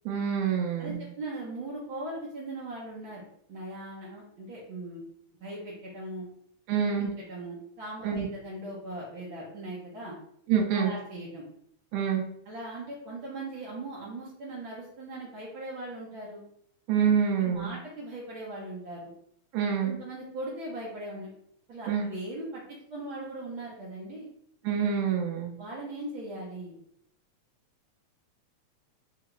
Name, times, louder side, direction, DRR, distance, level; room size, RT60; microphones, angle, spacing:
voice 1, 0.0-1.0 6.7-7.1 8.0-8.3 10.5-10.9 11.9-12.2 16.9-17.7 19.5-19.9 21.9-22.1 24.6-25.6, right 7 dB, 90° right, 1 dB, 1.3 m, -26 dB
voice 2, 0.8-3.2 3.5-5.0 5.4-6.3 7.0-10.1 10.7-11.4 12.5-16.4 17.4-19.1 19.8-21.3 21.7-22.6 22.9-24.3 25.6-26.8, right 1 dB, 70° right, -6 dB, 1.2 m, -39 dB
4.8 x 2.3 x 3.0 m, 0.70 s
omnidirectional pair, 3.4 m